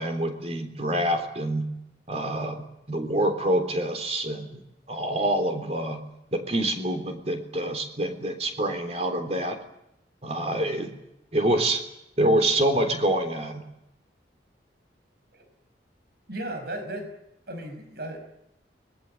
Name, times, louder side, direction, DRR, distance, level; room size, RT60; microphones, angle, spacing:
voice 1, 0.0-1.7 2.1-4.6 4.9-6.0 6.3-9.6 10.2-10.9 11.3-11.8 12.2-13.6, right 1 dB, 35° right, 6 dB, 3.6 m, -26 dB
voice 2, 16.3-17.1 17.5-18.2, right 1 dB, 60° right, 7 dB, 5.0 m, -35 dB
25.0 x 21.0 x 8.6 m, 0.84 s
head